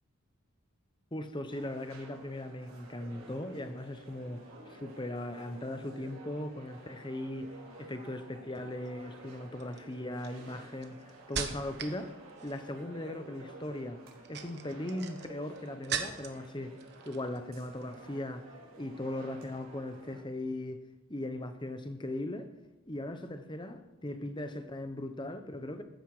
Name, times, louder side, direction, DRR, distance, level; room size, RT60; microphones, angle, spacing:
voice 1, 1.1-12.1 12.4-14.0 14.3-16.8 17.0-18.5 18.8-20.8 21.1-22.5 22.9-25.8, left 1 dB, 20° left, 1.0 m, -39 dB
sound 1, 1.5-20.2, right 2 dB, 90° right, 3.8 m, -52 dB
sound 2, 8.5-8.9 9.6-12.0 12.3-12.8 14.0-16.5 16.8-17.4 17.7-18.0, right 7 dB, 50° right, 1.2 m, -40 dB
15.0 x 12.5 x 4.9 m
head